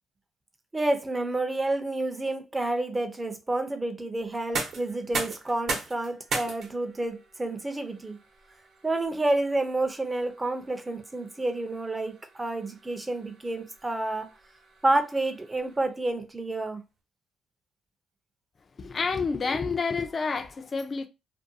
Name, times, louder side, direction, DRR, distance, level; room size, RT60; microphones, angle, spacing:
voice 1, 0.7-8.2 8.8-14.3 14.8-16.8, right 2 dB, 20° right, 0.6 m, -29 dB
sound 1, 4.3-16.1, right 4 dB, 65° right, 0.9 m, -39 dB
voice 2, 18.8-21.1, left 4 dB, 40° left, 0.4 m, -29 dB
2.5 x 2.2 x 2.7 m
cardioid pair, 90°, 0 cm